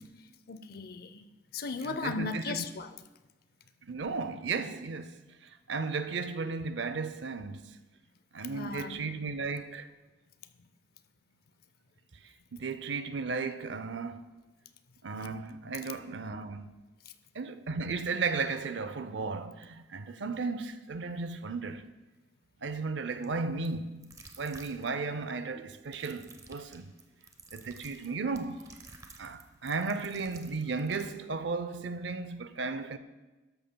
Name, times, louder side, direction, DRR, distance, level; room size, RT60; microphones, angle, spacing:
voice 1, 0.5-1.2 1.5-3.0 8.5-9.0 10.6-10.7, left 4 dB, 55° left, 0.6 m, -36 dB
voice 2, 1.8-2.6 3.9-5.1 5.7-7.7 8.3-9.9 12.5-14.2 15.0-16.7 17.4-21.8 22.6-24.1 24.4-26.9 27.5-28.6 29.2-33.0, right 4 dB, 75° right, 0.5 m, -35 dB
Schmatzschmatz proc, 23.2-23.4 23.6-23.7 24.0-25.2 25.8-31.1, right 3 dB, 20° right, 0.8 m, -53 dB
13.0 x 12.0 x 2.2 m
head